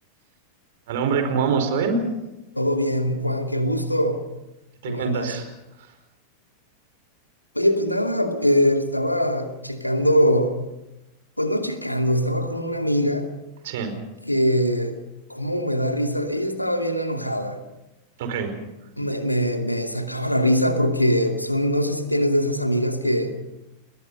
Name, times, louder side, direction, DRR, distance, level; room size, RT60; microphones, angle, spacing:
voice 1, 0.9-2.0 4.8-5.5 13.6-14.0 18.2-18.5, right 5 dB, 55° right, 7 dB, 4.9 m, -24 dB
voice 2, 2.5-4.2 4.8-5.3 7.5-10.6 11.4-13.3 14.3-15.0 15.3-17.6 19.0-23.4, equal, 90° left, 5 dB, 2.6 m, -22 dB
30.0 x 21.5 x 5.6 m, 0.96 s
figure-of-eight pair, 90°, 0 cm